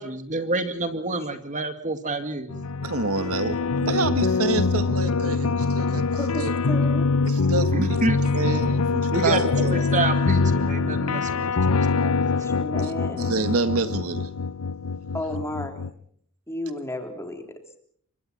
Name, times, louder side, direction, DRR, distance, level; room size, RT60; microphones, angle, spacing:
voice 1, 0.0-2.5 7.7-8.5 9.1-12.3, right 2 dB, 35° right, 8 dB, 2.2 m, -28 dB
sound 1, 2.5-15.9, left 4 dB, 80° left, 0.8 m, -24 dB
voice 2, 2.8-6.1 6.4-6.5 7.2-7.7 8.2-9.7 12.8-12.9 13.2-14.3, right 3 dB, 80° right, 10 dB, 1.7 m, -27 dB
voice 3, 6.1-7.1 9.6-9.7 12.3-13.4 15.1-15.9 16.5-17.6, left 1 dB, 10° left, 5 dB, 3.5 m, -33 dB
28.5 x 24.5 x 4.4 m, 0.63 s
head